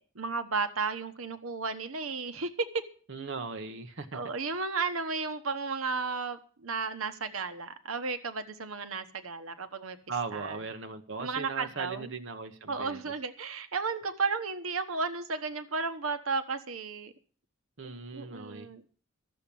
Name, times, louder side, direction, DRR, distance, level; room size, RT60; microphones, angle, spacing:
voice 1, 0.1-2.7 4.1-10.0 10.3-10.6 11.2-12.1 12.7-17.1 17.8-18.8, right 4 dB, 90° right, 1.2 m, -33 dB
voice 2, 3.1-4.2 10.1-13.0 17.8-18.7, right 4 dB, 60° right, 1.0 m, -38 dB
13.5 x 7.2 x 8.5 m
head